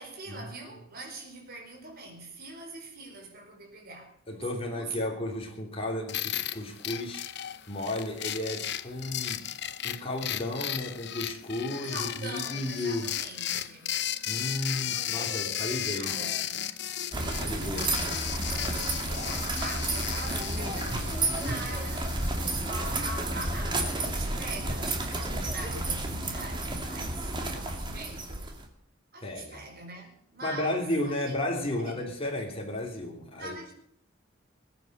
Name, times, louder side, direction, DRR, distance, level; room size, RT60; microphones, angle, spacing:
voice 1, 0.0-5.0 11.6-14.1 14.8-16.7 19.1-28.5 29.1-31.3 31.7-32.0 33.3-33.7, right 2 dB, 50° right, 4.7 m, -43 dB
voice 2, 4.3-7.2 7.7-9.4 9.8-13.1 14.3-16.2 17.3-18.1 18.5-18.8 29.2-29.6 30.4-33.5, left 1 dB, 30° left, 3.3 m, -33 dB
sound 1, 6.1-23.1, left 11 dB, 60° left, 0.8 m, -35 dB
sound 2, 17.1-28.7, right 2 dB, 25° right, 2.5 m, -31 dB
20.5 x 9.3 x 6.7 m
head